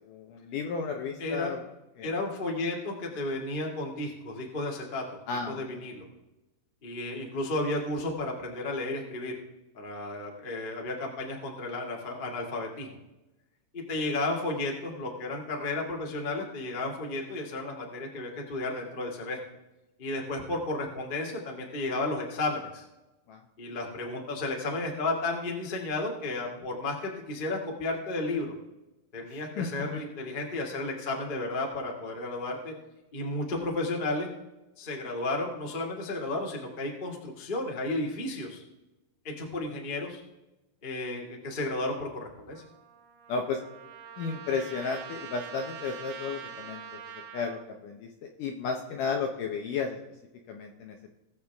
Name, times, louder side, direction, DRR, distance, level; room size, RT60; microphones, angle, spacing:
voice 1, 0.1-1.7 2.0-2.1 5.3-5.8 23.3-23.4 29.6-30.0 43.3-43.6 44.2-46.8 47.3-50.0 50.5-51.1, left 5 dB, 70° left, 3 dB, 2.0 m, -33 dB
voice 2, 1.2-1.5 2.0-5.0 5.5-6.0 6.8-9.3 9.7-12.9 13.7-19.4 20.0-22.8 23.6-28.5 29.1-32.7 33.1-34.3 34.8-38.6 39.2-40.2 40.8-42.6, left 2 dB, 25° left, 0 dB, 1.0 m, -33 dB
Trumpet, 42.5-47.6, right 8 dB, 75° right, 2.9 m, -44 dB
20.5 x 7.2 x 3.5 m, 1.0 s
omnidirectional pair, 4.7 m